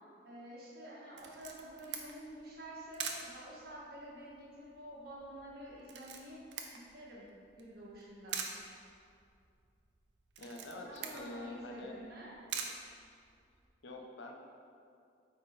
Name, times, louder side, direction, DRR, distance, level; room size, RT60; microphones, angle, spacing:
voice 1, 0.2-6.4 6.7-8.4 10.9-12.3, right 1 dB, 55° right, -7 dB, 1.7 m, -49 dB
Camera, 1.2-13.7, right 6 dB, 75° right, 0.7 m, -46 dB
voice 2, 10.4-12.0 13.8-14.3, left 2 dB, 80° left, 1 dB, 0.8 m, -46 dB
8.8 x 4.0 x 4.1 m, 2.4 s
head